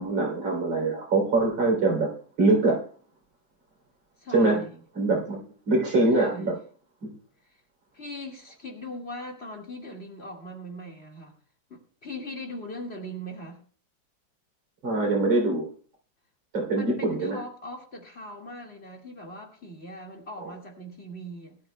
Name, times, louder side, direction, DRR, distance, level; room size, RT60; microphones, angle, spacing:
voice 1, 0.0-2.8 4.3-4.6 5.0-5.4 5.7-6.5 7.0-7.1 14.8-15.7 16.5-17.4 20.4-20.5, right 2 dB, 80° right, 1 dB, 4.2 m, -23 dB
voice 2, 4.2-4.7 6.1-6.6 7.4-7.6 7.9-11.4 11.7-13.6 16.7-21.6, left 1 dB, 30° left, 0 dB, 2.2 m, -40 dB
21.0 x 12.5 x 2.2 m, 0.43 s
omnidirectional pair, 2.1 m